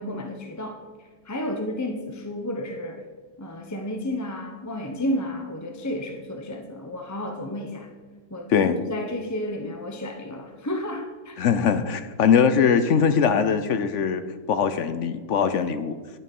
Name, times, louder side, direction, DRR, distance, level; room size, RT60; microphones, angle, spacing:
voice 1, 0.0-3.0 3.4-7.9 8.3-11.3, left 1 dB, 15° left, 3 dB, 0.7 m, -32 dB
voice 2, 11.4-16.0, left 6 dB, 65° left, 11 dB, 0.8 m, -21 dB
11.0 x 9.6 x 5.4 m, 1.4 s
omnidirectional pair, 1.8 m